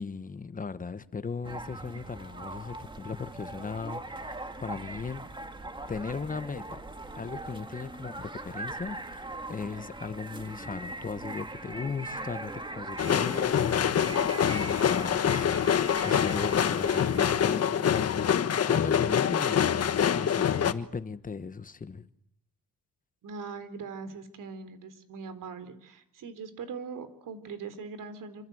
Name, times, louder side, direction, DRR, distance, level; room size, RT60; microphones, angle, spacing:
voice 1, 0.0-5.3 5.9-6.8 7.1-22.1, left 5 dB, 25° left, 1.3 m, -37 dB
sound 1, 1.4-17.6, right 2 dB, 15° right, 2.2 m, -41 dB
sound 2, 13.0-20.7, left 8 dB, 45° left, 1.3 m, -25 dB
voice 2, 23.2-28.5, right 5 dB, 65° right, 4.0 m, -41 dB
27.0 x 25.5 x 8.0 m
cardioid pair, 135°, 34 cm